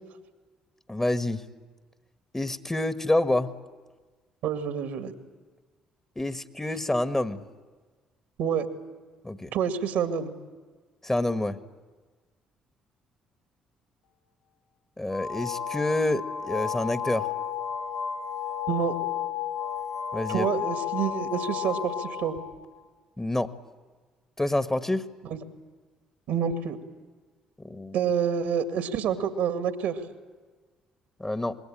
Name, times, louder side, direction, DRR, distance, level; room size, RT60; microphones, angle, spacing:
voice 1, 0.9-1.4 2.3-3.5 6.1-7.4 9.2-9.5 11.0-11.6 15.0-17.3 20.1-20.5 23.2-23.5 24.4-25.0 27.6-27.9 31.2-31.6, left 1 dB, 15° left, 11 dB, 1.5 m, -27 dB
voice 2, 4.4-5.1 8.4-8.7 9.5-10.3 18.7-18.9 20.3-22.4 25.3-25.4 26.3-26.8 27.9-30.0, right 7 dB, 70° right, 9 dB, 2.1 m, -27 dB
sound 1, 15.1-22.6, left 8 dB, 85° left, 3.7 m, -32 dB
26.0 x 21.0 x 8.8 m, 1.4 s
hypercardioid pair, 50°, 3 cm